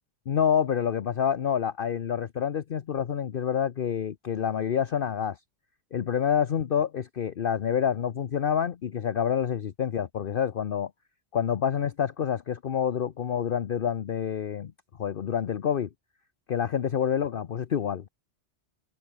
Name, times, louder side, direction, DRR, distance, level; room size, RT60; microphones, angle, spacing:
voice 1, 0.3-5.4 5.9-10.9 11.3-14.7 15.0-15.9 16.5-18.1, left 8 dB, 55° left, 0.9 m, -27 dB
omnidirectional pair, 1.2 m